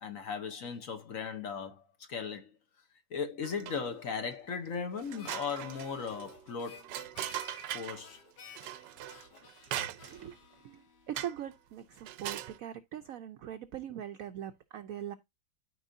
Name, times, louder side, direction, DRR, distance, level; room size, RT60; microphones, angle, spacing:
voice 1, 0.0-2.6 3.1-6.9 7.7-8.2, left 6 dB, 55° left, 1.2 m, -37 dB
sound 1, 3.4-4.0 4.5-4.6 5.0-8.1 8.6-10.4 11.2-11.5 12.0-12.6, right 12 dB, 85° right, 1.3 m, -40 dB
Harmonica, 5.1-11.6, left 6 dB, 75° left, 1.8 m, -55 dB
voice 2, 10.6-15.2, right 10 dB, 65° right, 0.9 m, -41 dB
12.5 x 4.8 x 2.7 m
omnidirectional pair, 1.9 m